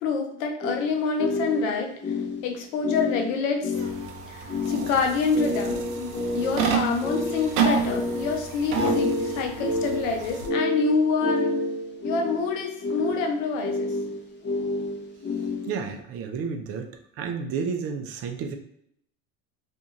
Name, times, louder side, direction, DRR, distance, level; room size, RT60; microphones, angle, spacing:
voice 1, 0.0-1.9 2.4-3.7 4.3-11.6 12.0-13.9, left 4 dB, 80° left, 3 dB, 0.7 m, -27 dB
sound 1, 0.6-15.9, left 2 dB, 30° left, 0.7 m, -30 dB
sound 2, 3.7-10.5, right 6 dB, 90° right, 0.6 m, -30 dB
voice 2, 15.7-16.9 17.2-18.6, right 5 dB, 40° right, 5 dB, 0.4 m, -31 dB
2.6 x 2.4 x 2.8 m, 0.71 s
supercardioid pair, 85°, 39 cm